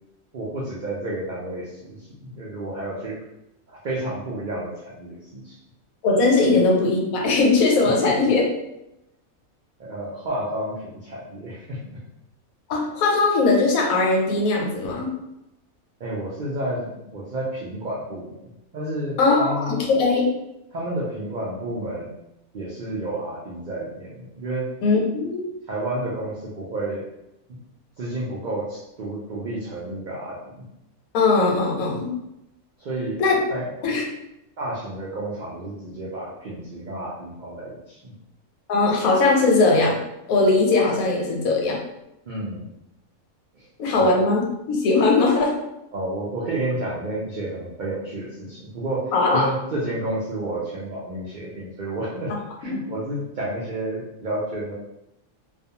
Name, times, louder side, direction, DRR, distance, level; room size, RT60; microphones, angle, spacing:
voice 1, 0.3-3.2 3.7-5.6 8.0-8.3 9.8-11.8 16.0-18.4 18.7-19.8 20.7-22.1 22.5-24.7 25.7-27.1 28.0-30.6 32.8-33.2 33.5-33.7 34.6-38.1 42.3-42.7 43.5-43.7 44.0-44.2 45.9-54.7, right 1 dB, 75° right, -6 dB, 0.4 m, -30 dB
voice 2, 6.0-8.4 12.7-15.1 19.2-20.3 24.8-25.4 31.1-32.1 33.2-33.4 33.8-34.0 38.7-40.0 40.3-41.8 43.8-45.6 49.1-49.5 52.6-52.8, left 3 dB, 85° left, -1 dB, 1.1 m, -19 dB
2.4 x 2.2 x 2.7 m, 0.88 s
omnidirectional pair, 1.4 m